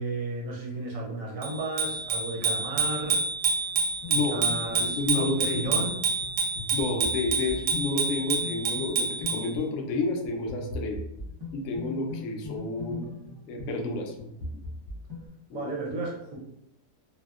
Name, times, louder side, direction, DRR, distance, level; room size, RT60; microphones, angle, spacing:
voice 1, 0.0-3.2 4.1-5.9 15.5-16.4, right 3 dB, 65° right, -2 dB, 0.9 m, -33 dB
Bicycle bell, 1.4-9.5, right 4 dB, 85° right, 1.3 m, -28 dB
sound 1, 4.0-15.3, left 2 dB, 20° right, 0.6 m, -40 dB
voice 2, 4.1-5.7 6.7-11.0 11.5-13.1 13.5-14.2 14.5-14.6 15.5-15.7, left 3 dB, 80° left, 2 dB, 0.7 m, -30 dB
3.3 x 2.1 x 2.3 m, 0.80 s
omnidirectional pair, 1.9 m